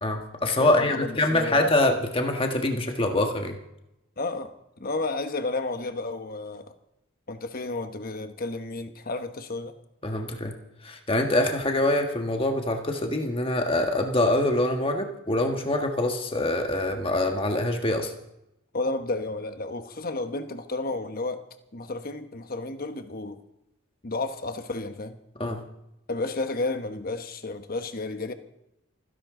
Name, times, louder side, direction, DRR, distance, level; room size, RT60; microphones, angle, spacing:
voice 1, 0.0-3.6 10.0-10.5 10.8-18.1 25.4-25.6, left 1 dB, 25° left, 1.5 m, -25 dB
voice 2, 0.6-1.7 4.2-4.5 4.8-6.7 7.3-9.7 18.7-21.4 21.7-23.4 24.0-25.2 26.1-28.3, left 2 dB, 45° left, 1.1 m, -32 dB
28.5 x 10.5 x 3.8 m
head